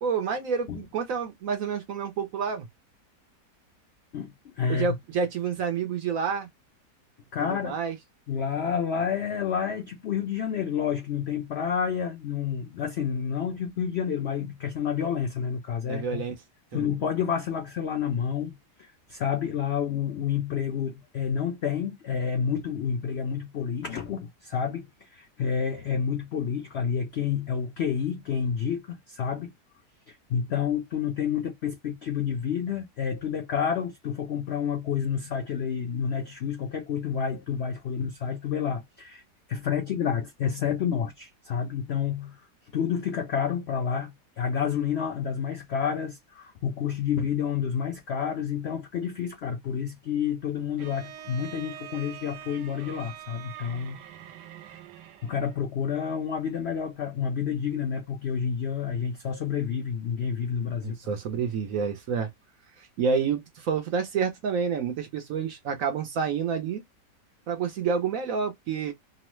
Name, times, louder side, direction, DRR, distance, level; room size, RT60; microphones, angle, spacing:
voice 1, 0.0-2.7 4.7-6.5 7.5-8.0 15.9-16.3 16.7-16.8 60.8-62.3 62.8-66.8 67.5-68.9, right 6 dB, 65° right, 0.9 m, -29 dB
voice 2, 4.1-5.0 7.3-7.8 8.3-16.2 16.7-29.5 30.1-39.2 39.5-42.4 42.7-54.0 55.2-61.0, left 7 dB, 75° left, 0.6 m, -29 dB
Bowed string instrument, 50.8-55.7, right 11 dB, 85° right, 1.2 m, -44 dB
3.1 x 2.0 x 3.0 m
omnidirectional pair, 1.8 m